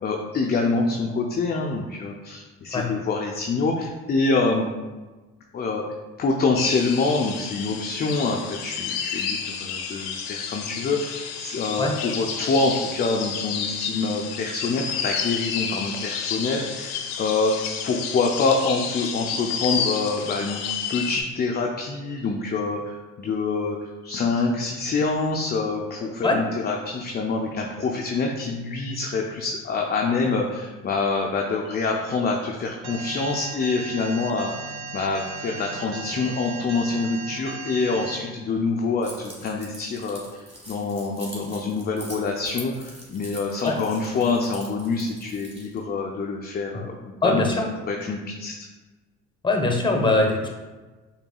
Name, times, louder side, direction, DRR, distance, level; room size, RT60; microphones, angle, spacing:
voice 1, 0.0-4.7 5.5-5.8 6.2-20.6 20.9-23.8 24.0-47.4 47.9-48.5, left 3 dB, 30° left, 0 dB, 0.4 m, -26 dB
sound 1, 6.6-21.2, left 7 dB, 80° left, 0.5 m, -31 dB
Alarm, 32.8-38.2, right 4 dB, 50° right, 0.6 m, -36 dB
Keys jangling, 39.0-45.8, right 1 dB, 20° right, 1.5 m, -44 dB
voice 2, 47.2-47.6 49.4-50.5, left 2 dB, 15° left, 2 dB, 0.8 m, -21 dB
4.6 x 2.7 x 2.3 m, 1.2 s
hypercardioid pair, 60°, 34 cm